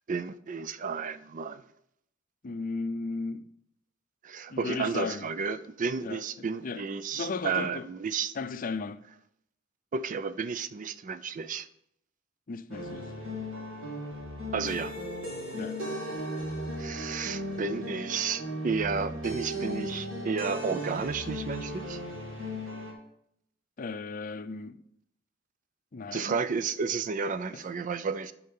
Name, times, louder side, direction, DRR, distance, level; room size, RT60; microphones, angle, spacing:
voice 1, 0.1-1.6 4.2-8.3 9.9-11.7 14.5-14.9 16.8-22.0 26.1-28.3, right 5 dB, 40° right, 0.4 m, -32 dB
voice 2, 2.4-3.5 4.5-5.3 6.0-6.8 7.1-7.9 8.3-9.0 12.5-13.1 15.5-15.8 23.8-24.8 25.9-26.4 27.5-27.6, left 4 dB, 45° left, 0.5 m, -35 dB
sound 1, 12.7-22.9, equal, 85° right, 3.1 m, -36 dB
12.0 x 4.7 x 5.4 m
head